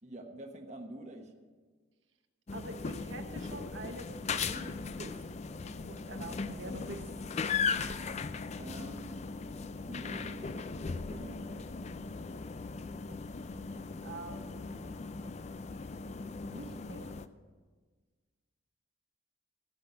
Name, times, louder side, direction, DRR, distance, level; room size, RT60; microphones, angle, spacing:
voice 1, 0.0-1.3 6.2-7.0 7.5-8.0 8.6-9.2 9.9-11.7, right 1 dB, 35° right, 3 dB, 1.2 m, -48 dB
sound 1, 2.5-17.3, left 5 dB, 35° left, 0.4 m, -38 dB
voice 2, 2.5-5.2 5.6-7.1 14.0-14.9 16.4-17.2, right 2 dB, 70° right, 4 dB, 1.1 m, -46 dB
16.5 x 6.0 x 8.2 m, 1.4 s
head